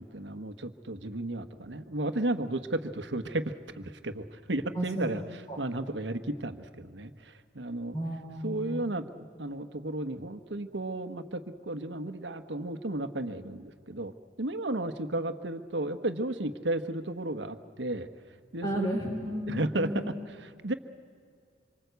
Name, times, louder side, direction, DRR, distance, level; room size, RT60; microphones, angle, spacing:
voice 1, 0.0-7.9 8.4-9.1 9.4-14.1 14.4-18.1 18.5-18.9 19.5-20.0 20.4-20.7, right 1 dB, 85° right, 10 dB, 1.3 m, -33 dB
voice 2, 4.7-5.1 5.5-5.6 7.9-8.8 18.6-19.5 19.8-20.1, equal, 25° left, -3 dB, 3.7 m, -33 dB
26.5 x 24.0 x 8.2 m, 2.3 s
head